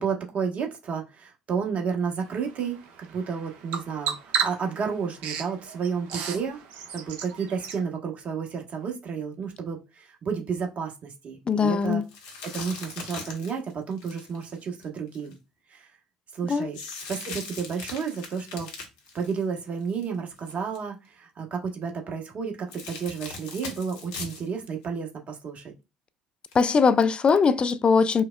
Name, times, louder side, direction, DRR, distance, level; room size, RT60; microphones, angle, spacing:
voice 1, 0.0-6.6 6.9-12.0 12.4-15.4 15.7-15.9 16.3-16.8 17.1-18.7 19.1-25.7, right 6 dB, 45° right, 1.1 m, -31 dB
Bird vocalization bird call bird song, 2.2-7.8, right 7 dB, 60° right, 0.7 m, -35 dB
voice 2, 11.5-12.0 16.5-16.7 26.5-28.2, left 5 dB, 30° left, 0.4 m, -21 dB
sound 1, 12.1-15.3 16.7-20.0 20.4-20.8 22.7-24.5 24.8-24.9 26.5-26.6, left 4 dB, 70° left, 1.1 m, -40 dB
5.1 x 2.0 x 2.3 m
figure-of-eight pair, 55°, 3 cm